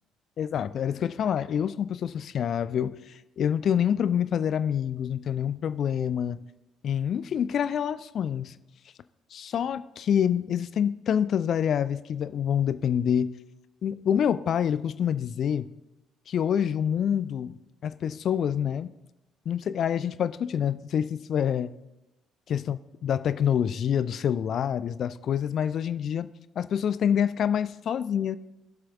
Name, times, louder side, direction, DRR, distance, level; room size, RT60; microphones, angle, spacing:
voice 1, 0.4-3.0 3.4-6.4 6.8-8.5 9.3-13.3 13.8-15.7 16.3-17.6 17.8-18.9 19.5-21.7 22.5-26.3 26.6-28.4, left 8 dB, 50° left, 15 dB, 0.3 m, -26 dB
21.5 x 7.6 x 2.3 m, 0.97 s
figure-of-eight pair, 45°, 0 cm